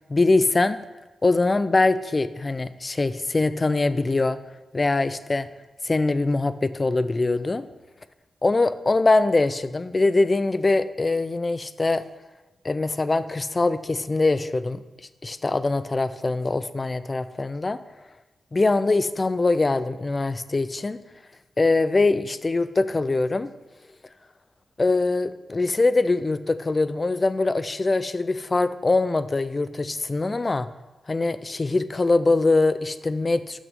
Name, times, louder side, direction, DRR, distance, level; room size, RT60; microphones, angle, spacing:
voice 1, 0.1-0.8 1.2-4.4 4.7-5.5 5.8-7.6 8.4-12.0 12.6-14.8 15.2-17.8 18.5-21.0 21.6-23.5 24.8-30.7 31.1-33.6, left 3 dB, 40° left, 14 dB, 0.4 m, -23 dB
6.1 x 6.1 x 5.2 m, 1.1 s
supercardioid pair, 40°, 0 cm